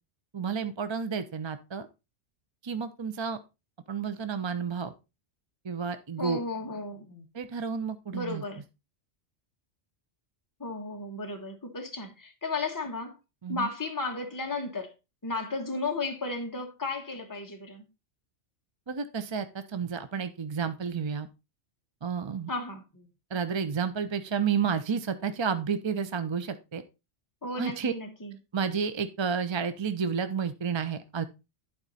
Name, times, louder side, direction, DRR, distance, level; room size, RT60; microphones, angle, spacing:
voice 1, 0.3-1.9 2.6-3.4 3.9-4.9 5.6-6.4 7.3-8.4 13.4-13.7 18.9-21.3 22.0-22.5 23.3-26.8 27.6-27.9 28.5-31.2, right 6 dB, 35° right, 0.4 m, -31 dB
voice 2, 6.2-7.2 8.1-8.6 10.6-13.2 13.5-14.9 15.2-17.9 22.5-23.1 27.4-28.4, left 3 dB, 15° left, 1.4 m, -34 dB
11.5 x 4.6 x 4.1 m
omnidirectional pair, 1.2 m